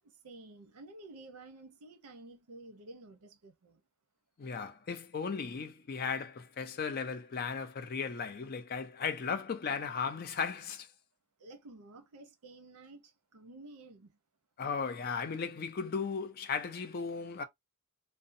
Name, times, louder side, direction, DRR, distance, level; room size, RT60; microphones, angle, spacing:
voice 1, 0.0-3.8 11.4-14.2, right 2 dB, 90° right, 0.6 m, -52 dB
voice 2, 4.4-10.9 14.6-17.4, left 5 dB, 45° left, 0.4 m, -36 dB
2.6 x 2.1 x 2.5 m
head